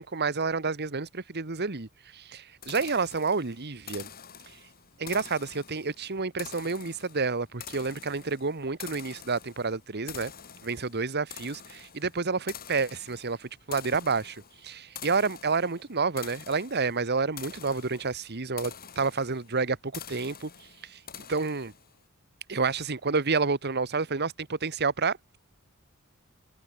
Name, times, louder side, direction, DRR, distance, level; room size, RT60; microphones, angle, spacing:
voice 1, 0.0-4.1 5.0-10.3 10.6-20.5 20.8-21.7 22.5-25.4, right 4 dB, 50° right, 1.4 m, -29 dB
sound 1, 2.6-22.0, left 8 dB, 45° left, 4.6 m, -47 dB
open air
head